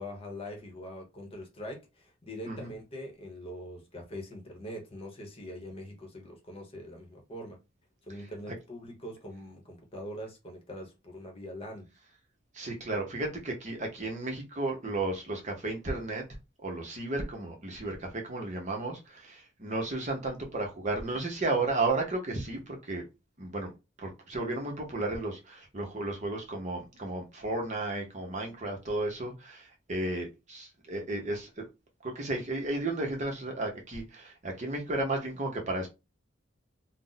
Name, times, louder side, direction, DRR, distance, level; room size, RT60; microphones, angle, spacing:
voice 1, 0.0-7.6 8.0-11.9, equal, 30° left, 0.9 m, -43 dB
voice 2, 12.5-16.2 16.6-23.0 23.4-23.7 24.0-31.6 32.0-35.9, right 2 dB, 40° right, 0.8 m, -33 dB
2.5 x 2.0 x 3.9 m
head